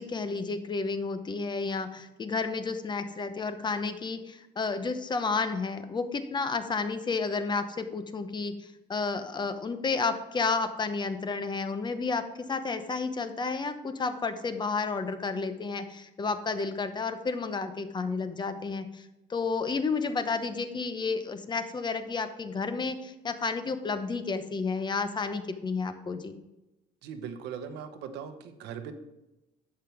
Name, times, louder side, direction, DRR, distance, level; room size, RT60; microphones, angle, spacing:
voice 1, 0.0-26.3, left 4 dB, 25° left, 9 dB, 1.0 m, -31 dB
voice 2, 27.0-28.9, right 7 dB, 85° right, 8 dB, 1.1 m, -39 dB
10.5 x 7.9 x 3.5 m, 0.97 s
cardioid pair, 110°, 17 cm